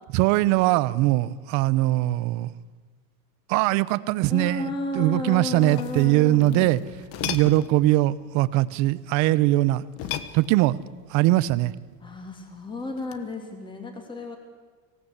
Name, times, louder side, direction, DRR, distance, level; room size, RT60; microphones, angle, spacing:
voice 1, 0.1-2.5 3.5-4.7 4.9-6.8 7.2-9.8 10.3-10.8 11.1-11.7, right 17 dB, 45° right, 17 dB, 0.9 m, -21 dB
voice 2, 4.2-6.8 12.0-14.4, left 2 dB, 10° left, 4 dB, 2.8 m, -33 dB
sound 1, 5.4-7.8 9.9-10.9 13.0-13.3, left 10 dB, 35° left, 1.2 m, -36 dB
25.0 x 17.5 x 8.1 m, 1.4 s
supercardioid pair, 165°, 39 cm